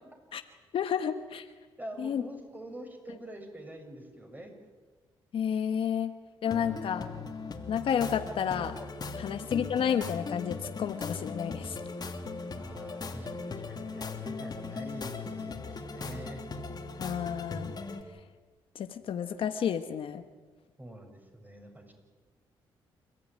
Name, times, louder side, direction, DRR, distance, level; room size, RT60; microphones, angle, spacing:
voice 1, 0.7-1.5 2.0-2.2 5.3-6.1 6.4-7.1 7.7-8.8 9.2-11.8 17.0-17.7 18.7-20.2, left 8 dB, 70° left, 7 dB, 1.3 m, -31 dB
voice 2, 1.8-4.5 9.2-9.3 12.5-16.4 20.8-21.9, right 1 dB, 20° right, 4 dB, 6.6 m, -45 dB
sound 1, 6.4-18.0, left 4 dB, 45° left, 2.9 m, -39 dB
28.5 x 14.5 x 9.7 m, 1.3 s
cardioid pair, 75°, 10 cm